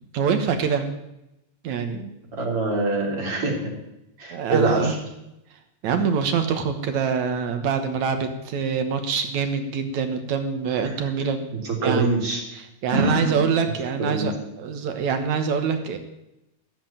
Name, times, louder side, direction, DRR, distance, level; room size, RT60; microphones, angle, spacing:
voice 1, 0.1-0.8 1.6-2.1 4.3-4.9 5.8-11.5 11.8-12.0 12.5-16.0, right 6 dB, 75° right, 6 dB, 2.5 m, -25 dB
voice 2, 2.3-3.7 4.2-5.0 10.8-11.1 11.5-12.4 12.9-13.4 14.0-14.3, right 2 dB, 50° right, -1 dB, 4.5 m, -24 dB
16.0 x 7.8 x 8.9 m, 0.89 s
omnidirectional pair, 3.3 m